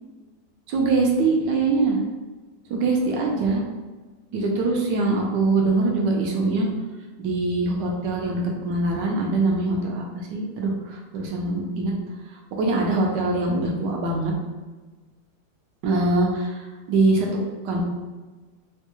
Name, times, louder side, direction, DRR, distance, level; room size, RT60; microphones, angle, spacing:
voice 1, 0.7-2.0 2.7-3.6 4.3-6.7 7.2-11.9 12.6-14.3 15.8-16.6 16.9-17.3 17.6-17.8, right 3 dB, 75° right, -1 dB, 1.2 m, -23 dB
3.9 x 2.2 x 2.9 m, 1.3 s
omnidirectional pair, 2.0 m